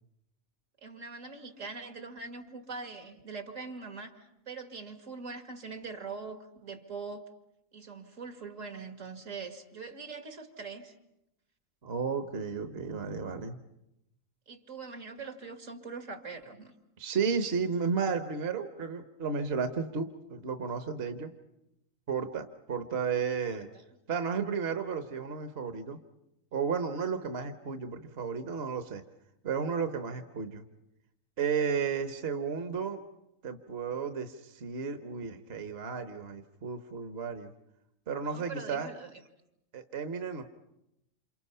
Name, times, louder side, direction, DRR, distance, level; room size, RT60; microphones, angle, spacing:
voice 1, 0.8-7.3 7.7-10.9 14.5-16.7 23.5-23.6 38.3-39.1, right 4 dB, 75° right, 6 dB, 2.5 m, -42 dB
voice 2, 11.8-13.6 17.0-21.3 22.1-23.7 24.1-26.0 26.5-29.0 29.4-30.6 31.4-33.0 33.4-37.5 38.1-38.9 39.7-40.4, right 6 dB, 50° right, 8 dB, 1.3 m, -33 dB
28.5 x 28.0 x 5.6 m, 0.86 s
omnidirectional pair, 1.4 m